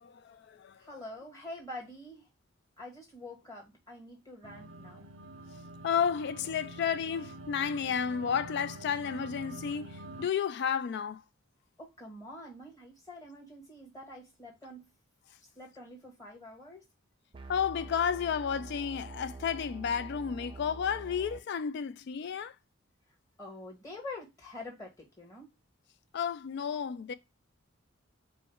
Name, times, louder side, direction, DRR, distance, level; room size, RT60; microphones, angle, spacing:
voice 1, 0.0-0.8 5.8-11.2 17.5-22.5 26.1-27.1, left 7 dB, 55° left, 0.3 m, -32 dB
voice 2, 0.8-2.3 2.8-5.1 11.8-14.9 15.5-16.9 23.4-25.5, left 1 dB, 15° left, 1.5 m, -46 dB
sound 1, 4.4-10.3, right 1 dB, 80° right, 0.6 m, -46 dB
sound 2, 17.3-21.4, right 3 dB, 25° right, 0.4 m, -45 dB
4.6 x 2.1 x 4.5 m
head